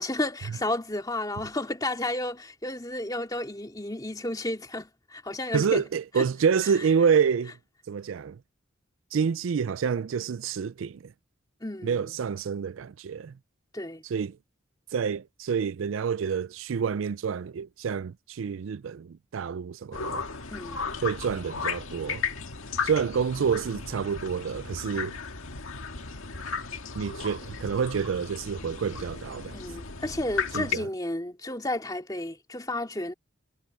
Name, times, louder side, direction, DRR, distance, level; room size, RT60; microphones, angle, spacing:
voice 1, 0.0-5.8 6.2-6.3 11.6-12.1 13.7-14.0 20.5-20.9 29.5-33.1, left 1 dB, 20° left, 2.5 m, -32 dB
voice 2, 5.5-7.5 7.9-8.4 9.1-11.1 11.8-13.3 14.1-14.4 14.9-20.2 21.0-22.2 22.8-25.2 27.0-29.6 30.5-30.9, right 6 dB, 75° right, 0.4 m, -28 dB
sound 1, 19.9-30.8, left 5 dB, 90° left, 1.9 m, -35 dB
head